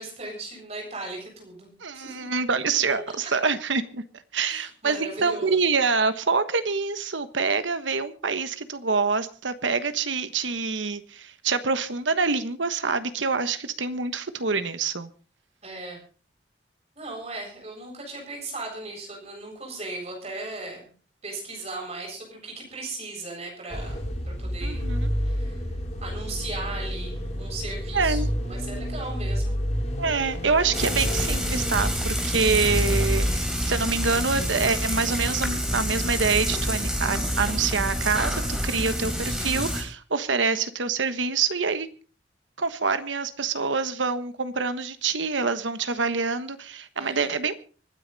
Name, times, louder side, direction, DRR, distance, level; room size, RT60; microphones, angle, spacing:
voice 1, 0.0-2.3 3.2-3.3 4.4-5.6 15.6-16.0 17.0-20.9 21.2-24.0 24.2-24.9 25.1-25.7 26.0-29.6 40.4-40.6 47.0-47.3, right 2 dB, 35° right, 0 dB, 7.6 m, -37 dB
voice 2, 1.8-4.0 4.3-15.1 24.6-25.1 27.9-28.3 30.0-41.9 42.6-47.5, right 4 dB, 90° right, 12 dB, 1.2 m, -26 dB
sound 1, 23.7-33.5, equal, 35° left, 3.5 m, -29 dB
Frying (food), 30.7-39.8, equal, 5° right, 3.3 m, -28 dB
25.0 x 9.7 x 4.1 m, 0.39 s
head